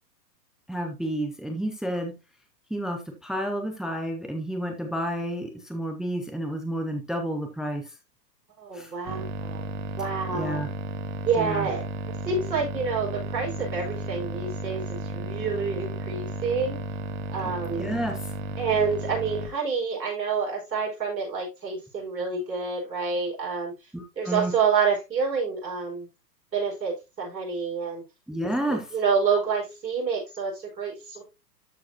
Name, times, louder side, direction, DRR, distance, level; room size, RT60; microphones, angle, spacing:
voice 1, 0.7-2.2 2.7-7.8 8.7-8.9 10.3-10.7 11.4-11.7 17.8-18.2 23.9-24.5 28.3-28.9, right 1 dB, ahead, 4 dB, 0.4 m, -30 dB
voice 2, 8.6-9.7 10.0-10.6 11.3-11.8 12.2-16.8 17.3-17.9 18.6-23.7 24.2-26.1 26.5-28.0 28.9-31.2, right 5 dB, 90° right, -1 dB, 5.1 m, -28 dB
sound 1, 9.1-19.5, right 3 dB, 45° right, 1.4 m, -34 dB
13.0 x 4.7 x 2.8 m, 0.25 s
hypercardioid pair, 120°, 49 cm